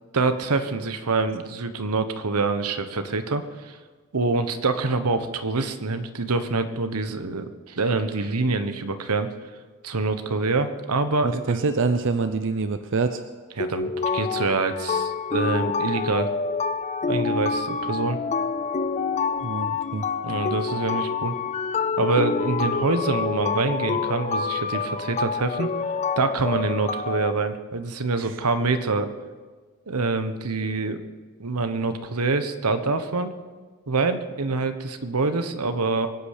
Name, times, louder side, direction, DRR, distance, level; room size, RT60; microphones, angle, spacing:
voice 1, 0.1-3.8 4.1-9.3 9.8-11.6 13.6-16.3 17.0-18.2 20.2-21.3 22.0-25.7 26.2-29.1 29.9-31.0 31.4-33.3 33.9-36.1, right 3 dB, 85° right, 9 dB, 1.1 m, -25 dB
voice 2, 11.2-13.2 19.4-20.0 28.2-28.3, right 4 dB, 60° right, 9 dB, 0.7 m, -25 dB
sound 1, 13.6-27.3, left 5 dB, 30° left, 0.4 m, -27 dB
23.0 x 8.5 x 6.6 m, 1.4 s
head